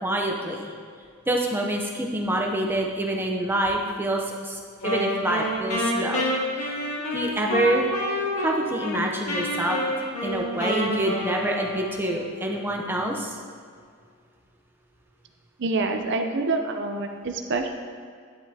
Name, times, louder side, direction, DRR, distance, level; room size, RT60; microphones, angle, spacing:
voice 1, 0.0-0.7 1.3-6.3 6.5-6.7 7.1-7.9 8.4-9.8 10.2-13.4, right 1 dB, 10° right, 0 dB, 0.7 m, -26 dB
Wind instrument woodwind instrument, 4.8-9.0 9.3-12.2, equal, 80° left, 1.7 m, -28 dB
voice 2, 15.6-17.7, right 3 dB, 55° right, 5 dB, 0.6 m, -26 dB
9.9 x 7.8 x 2.9 m, 2.1 s
head